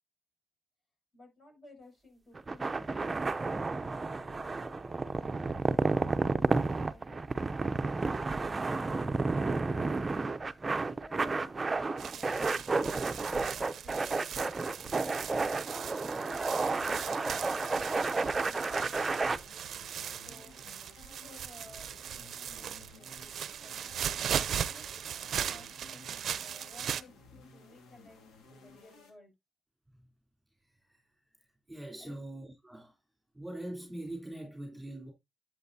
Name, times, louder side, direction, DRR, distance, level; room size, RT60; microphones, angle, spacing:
voice 1, 1.1-5.0 10.6-14.9 15.7-15.8 16.0-16.4 16.7-19.2 20.2-20.6 21.0-21.9 22.1-24.0 24.6-24.9 25.2-29.3 32.0-32.2, left 1 dB, 35° left, 6.7 m, -57 dB
sound 1, 2.4-19.4, right 3 dB, 25° right, 0.6 m, -31 dB
sound 2, 12.0-27.0, right 9 dB, 65° right, 0.6 m, -38 dB
sound 3, 18.2-29.1, left 4 dB, 75° left, 2.3 m, -57 dB
voice 2, 31.7-33.0 33.3-35.1, right 1 dB, 5° right, 3.4 m, -42 dB
11.0 x 7.5 x 2.7 m
cardioid pair, 90°, 0 cm